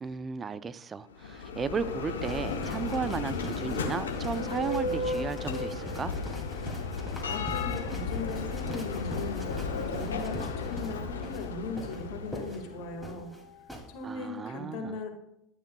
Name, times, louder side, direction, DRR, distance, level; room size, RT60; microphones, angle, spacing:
voice 1, 0.0-6.1 14.0-15.0, right 5 dB, 30° right, 15 dB, 0.5 m, -35 dB
Bell, 1.1-12.9, left 4 dB, 90° left, 0.8 m, -34 dB
sound 1, 2.2-13.8, equal, 5° right, 2.6 m, -43 dB
sound 2, 2.2-14.6, right 3 dB, 60° right, 2.0 m, -56 dB
voice 2, 7.2-9.7 9.9-13.3 13.9-15.1, left 3 dB, 65° left, 4 dB, 1.8 m, -38 dB
11.5 x 9.1 x 2.3 m, 0.83 s
hypercardioid pair, 80°, 0 cm